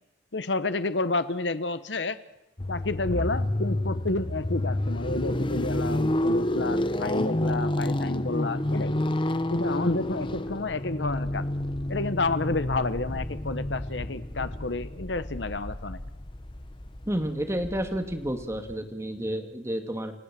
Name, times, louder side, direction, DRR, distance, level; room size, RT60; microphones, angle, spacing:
voice 1, 0.3-2.2 2.7-8.9 9.5-11.5 11.9-16.0, left 3 dB, 80° left, 12 dB, 1.2 m, -30 dB
sound 1, 2.6-18.8, left 1 dB, 30° left, 1.1 m, -30 dB
voice 2, 17.1-20.1, right 1 dB, 15° right, 6 dB, 2.3 m, -30 dB
29.0 x 18.0 x 7.7 m, 0.86 s
head